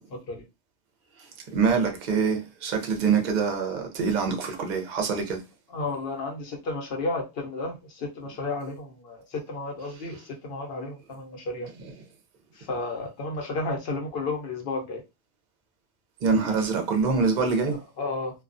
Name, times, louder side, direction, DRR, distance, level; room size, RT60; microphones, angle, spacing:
voice 1, 1.2-5.4 9.8-10.2 11.7-11.9 16.2-17.8, right 5 dB, 55° right, 0.6 m, -25 dB
voice 2, 5.7-7.7 8.2-9.2 9.5-10.2 10.4-11.7 12.7-15.0 17.7-18.3, left 2 dB, 65° left, 1.0 m, -32 dB
2.3 x 2.2 x 2.4 m
omnidirectional pair, 1.1 m